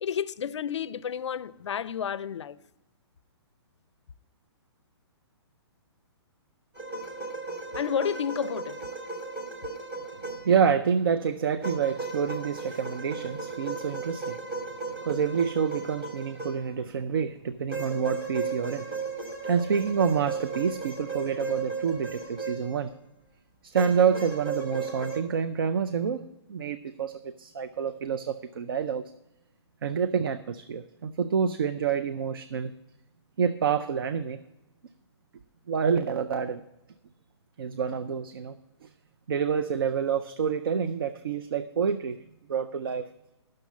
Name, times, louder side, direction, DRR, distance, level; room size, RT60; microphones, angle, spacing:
voice 1, 0.0-2.6 7.7-8.8, left 8 dB, 85° left, 0.5 m, -31 dB
sound 1, 6.8-10.6 11.6-16.9 17.7-22.9 23.8-25.2, right 4 dB, 10° right, 0.7 m, -35 dB
voice 2, 10.4-14.4 15.0-18.9 19.4-22.9 23.6-29.0 29.8-32.7 33.4-34.4 35.7-36.6 37.6-38.6 38.8-38.9 39.3-42.2 42.5-43.1, right 7 dB, 55° right, 0.4 m, -27 dB
10.5 x 6.5 x 7.1 m
hypercardioid pair, 180°, 15 cm